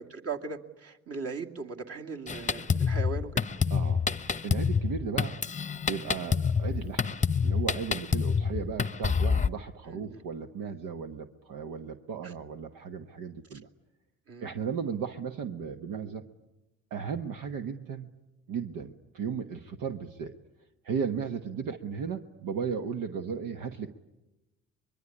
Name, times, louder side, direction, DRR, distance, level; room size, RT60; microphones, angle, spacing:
voice 1, 0.0-3.3 9.9-10.2 14.3-14.5, right 4 dB, 45° right, 2 dB, 2.4 m, -38 dB
Drum kit, 2.3-9.5, left 6 dB, 20° left, 0.9 m, -27 dB
voice 2, 3.7-5.4 5.8-13.7 14.4-16.2 16.9-18.1 18.5-20.3 20.8-23.9, right 6 dB, 70° right, 6 dB, 1.2 m, -35 dB
24.5 x 22.0 x 9.9 m, 1.0 s
hypercardioid pair, 60°, 34 cm